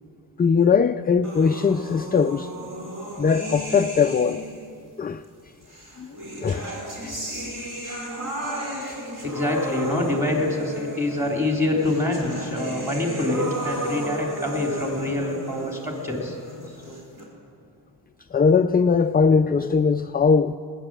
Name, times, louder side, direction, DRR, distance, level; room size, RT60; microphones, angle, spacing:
voice 1, 0.4-2.5 3.2-4.4 5.0-5.2 6.0-6.7 7.0-7.2 7.8-8.0 8.8-9.0 18.3-20.6, left 5 dB, 25° left, 0.3 m, -20 dB
sound 1, 1.2-4.7 5.7-17.2, right 1 dB, 45° right, 4.2 m, -34 dB
voice 2, 9.2-16.4 16.8-17.0, left 2 dB, 5° right, 3.4 m, -25 dB
19.5 x 9.0 x 7.5 m
cardioid pair, 75°, 45 cm